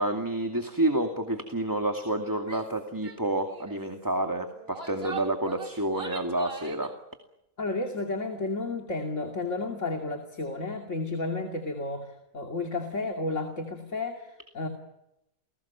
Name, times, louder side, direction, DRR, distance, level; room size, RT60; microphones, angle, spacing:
voice 1, 0.0-6.9, right 1 dB, 15° right, 4 dB, 2.4 m, -29 dB
Female speech woman speaking / Yell, 2.4-2.7 3.0-3.2 3.5-3.8 4.5-6.9, right 5 dB, 45° right, 2.7 m, -41 dB
voice 2, 7.6-14.7, left 3 dB, 60° left, 3 dB, 3.0 m, -32 dB
30.0 x 20.5 x 7.2 m, 0.87 s
omnidirectional pair, 1.5 m